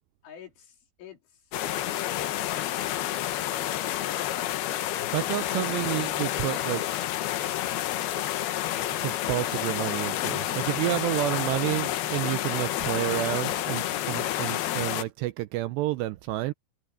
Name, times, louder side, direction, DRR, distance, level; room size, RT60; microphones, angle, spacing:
voice 1, 0.2-1.6 1.9-3.1 10.3-11.0, left 7 dB, 85° left, 6.6 m, -48 dB
sound 1, 1.5-15.0, left 13 dB, 70° left, 2.6 m, -29 dB
voice 2, 5.1-6.8 9.0-16.5, right 16 dB, 80° right, 2.5 m, -30 dB
sound 2, 9.5-15.1, left 2 dB, 55° left, 8.5 m, -50 dB
omnidirectional pair, 5.4 m